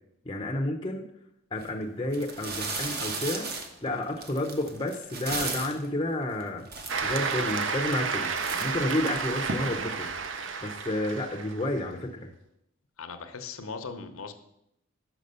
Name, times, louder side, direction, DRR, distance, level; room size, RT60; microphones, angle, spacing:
voice 1, 0.3-1.1 1.5-3.5 3.8-6.6 7.0-8.3 8.6-10.1 10.6-12.3, left 1 dB, 20° left, 1 dB, 0.5 m, -30 dB
sound 1, 1.5-1.7 2.1-5.9 6.4-6.5 6.7-7.4 7.9-8.1 8.4-9.5, right 4 dB, 45° right, 1.0 m, -35 dB
Cheering / Applause, 6.9-11.8, right 5 dB, 65° right, 0.6 m, -31 dB
voice 2, 13.0-14.3, left 4 dB, 85° left, 8 dB, 0.8 m, -39 dB
5.9 x 5.4 x 6.6 m, 0.79 s
head